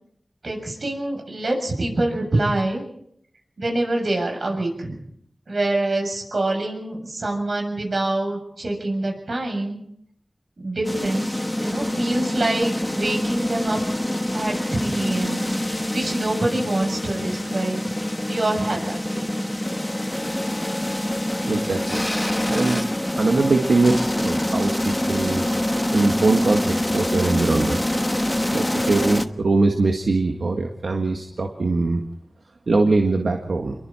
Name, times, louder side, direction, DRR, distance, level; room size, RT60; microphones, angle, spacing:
voice 1, 0.4-2.8 3.6-5.0 5.5-9.8 10.6-13.8 14.3-15.4 15.9-17.8 18.3-19.5, right 2 dB, 70° right, 2 dB, 7.2 m, -25 dB
sound 1, 10.8-29.3, left 1 dB, 15° left, 1.2 m, -25 dB
voice 2, 21.4-22.1 22.5-22.9 23.1-25.5 25.9-27.8 28.5-32.0 32.7-33.7, right 3 dB, 90° right, 3 dB, 1.7 m, -22 dB
28.5 x 22.5 x 4.4 m, 0.72 s
wide cardioid pair, 60°, 0 cm